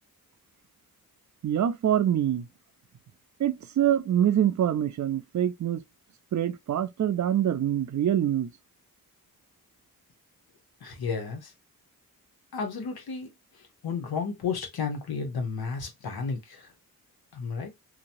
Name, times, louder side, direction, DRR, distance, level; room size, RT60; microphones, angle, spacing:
voice 1, 1.4-2.5 3.4-5.8 6.3-8.5, right 10 dB, 50° right, 0.5 m, -25 dB
voice 2, 10.8-11.5 12.5-16.7 17.3-17.8, left 5 dB, 80° left, 1.0 m, -33 dB
3.0 x 2.2 x 2.6 m
cardioid pair, 60°, 37 cm